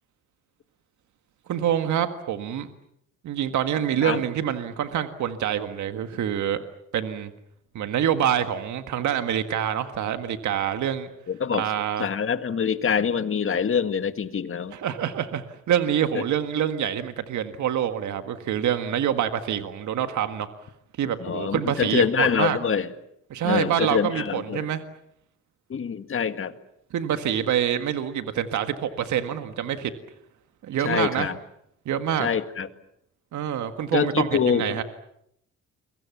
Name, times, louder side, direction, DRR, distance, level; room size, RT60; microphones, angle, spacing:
voice 1, 1.5-2.7 3.2-6.6 6.9-7.3 7.8-11.1 11.5-12.1 14.7-20.5 21.0-22.6 23.3-24.8 26.9-29.9 30.6-31.3 31.9-32.3 33.3-34.8, right 9 dB, 75° right, 8 dB, 1.7 m, -26 dB
voice 2, 11.3-11.7 12.0-14.8 16.1-16.2 21.2-22.9 23.4-24.7 25.7-26.5 30.8-31.4 32.2-32.7 33.9-34.8, left 7 dB, 45° left, 10 dB, 1.9 m, -25 dB
29.5 x 23.5 x 7.3 m, 0.77 s
cardioid pair, 90°, 30 cm